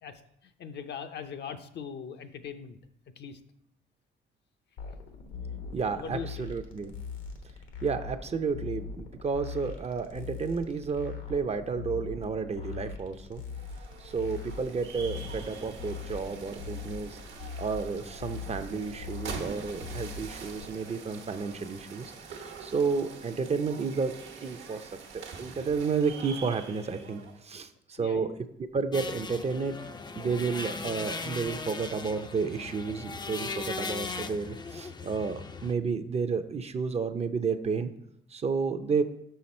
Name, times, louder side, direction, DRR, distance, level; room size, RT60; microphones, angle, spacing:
voice 1, 0.0-2.8 3.2-3.4 6.0-6.5 28.0-28.4, left 6 dB, 60° left, 8 dB, 0.6 m, -40 dB
sound 1, 4.8-20.7, left 5 dB, 80° left, 1.1 m, -41 dB
voice 2, 5.7-6.9 7.8-13.4 14.0-17.2 17.6-24.1 24.4-28.3 28.6-29.8 30.2-37.9 38.3-39.0, right 5 dB, 30° right, 10 dB, 0.5 m, -31 dB
sound 2, 13.4-27.5, right 5 dB, 75° right, 1.1 m, -45 dB
sound 3, 28.9-35.7, left 4 dB, 20° left, 0.4 m, -38 dB
5.8 x 5.7 x 4.3 m, 0.75 s
cardioid pair, 90°, 20 cm